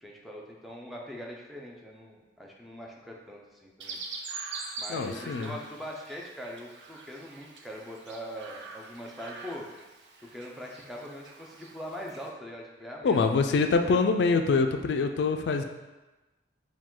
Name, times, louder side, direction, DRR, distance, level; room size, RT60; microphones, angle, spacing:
voice 1, 0.0-4.0 4.8-9.7 10.3-13.4, equal, ahead, -2 dB, 0.4 m, -42 dB
Chirp tweet, 3.8-12.3, right 4 dB, 85° right, 0.5 m, -44 dB
voice 2, 4.9-5.5 13.0-15.6, left 4 dB, 80° left, 6 dB, 0.3 m, -25 dB
4.8 x 2.3 x 3.7 m, 1.1 s
head